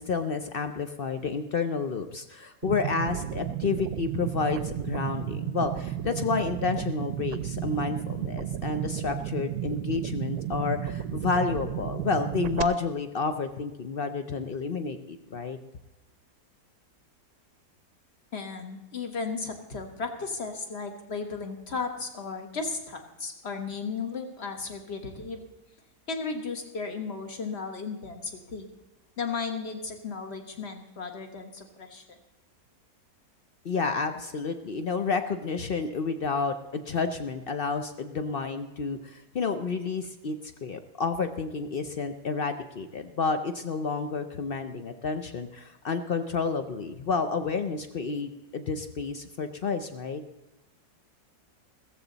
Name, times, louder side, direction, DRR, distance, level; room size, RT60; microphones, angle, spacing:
voice 1, 0.0-15.6 33.6-50.2, left 4 dB, 65° left, 8 dB, 0.5 m, -30 dB
sound 1, 2.6-12.6, right 11 dB, 70° right, 1.0 m, -33 dB
voice 2, 18.3-25.5 26.1-28.7 29.2-32.2, left 4 dB, 40° left, 5 dB, 1.6 m, -35 dB
15.5 x 14.0 x 4.0 m, 1.0 s
omnidirectional pair, 1.9 m